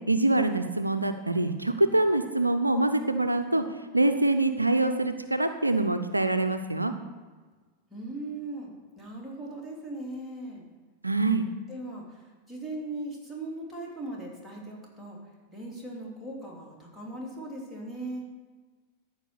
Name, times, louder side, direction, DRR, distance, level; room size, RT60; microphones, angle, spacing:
voice 1, 0.1-3.6 3.9-6.9 11.0-11.4, right 2 dB, 85° right, 8 dB, 0.5 m, -25 dB
voice 2, 7.9-10.6 11.7-15.2 15.5-18.3, right 2 dB, ahead, -4 dB, 3.0 m, -39 dB
13.5 x 4.7 x 6.8 m, 1.4 s
figure-of-eight pair, 90°, 0 cm